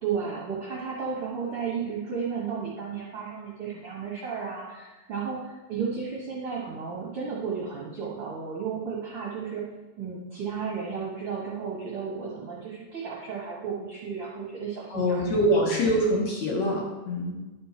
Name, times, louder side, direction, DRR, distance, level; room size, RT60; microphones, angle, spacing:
voice 1, 0.0-9.7 10.0-15.3, right 6 dB, 60° right, -4 dB, 1.5 m, -33 dB
voice 2, 14.9-17.4, equal, 60° left, -2 dB, 2.3 m, -24 dB
9.9 x 5.2 x 5.8 m, 1.1 s
omnidirectional pair, 4.2 m